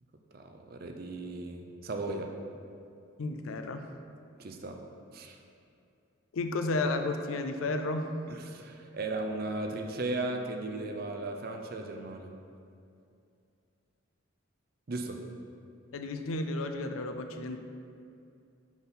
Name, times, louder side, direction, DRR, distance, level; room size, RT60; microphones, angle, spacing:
voice 1, 0.3-2.3 4.4-4.8 5.1-5.4 8.3-12.3 14.9-15.2, right 2 dB, 45° right, 4 dB, 0.5 m, -36 dB
voice 2, 3.2-3.9 6.3-8.1 15.9-17.6, left 2 dB, 80° left, 6 dB, 0.5 m, -32 dB
6.0 x 4.1 x 5.3 m, 2.5 s
head